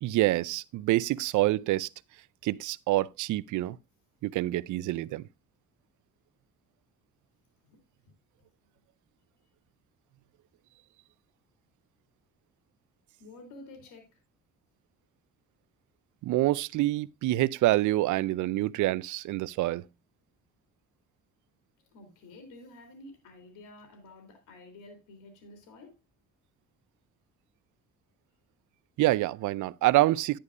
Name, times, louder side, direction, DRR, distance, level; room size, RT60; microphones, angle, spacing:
voice 1, 0.0-1.9 2.4-3.8 4.2-5.3 16.2-19.8 29.0-30.4, right 17 dB, 75° right, 0.5 m, -26 dB
voice 2, 13.2-14.2 21.8-25.9, left 2 dB, 85° left, 3.0 m, -50 dB
11.0 x 10.0 x 2.5 m
cardioid pair, 90°, 30 cm